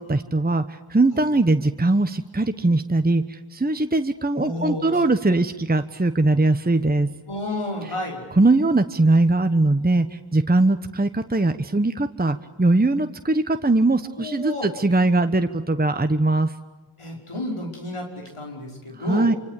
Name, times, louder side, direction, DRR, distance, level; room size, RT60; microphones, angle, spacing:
voice 1, 0.0-7.1 8.4-16.5 19.0-19.3, right 2 dB, 20° right, 8 dB, 1.1 m, -21 dB
voice 2, 4.3-5.0 7.3-8.2 14.2-14.7 17.0-19.3, left 1 dB, 80° left, 1 dB, 5.7 m, -31 dB
26.0 x 25.0 x 8.4 m, 1.1 s
wide cardioid pair, 40°, 50 cm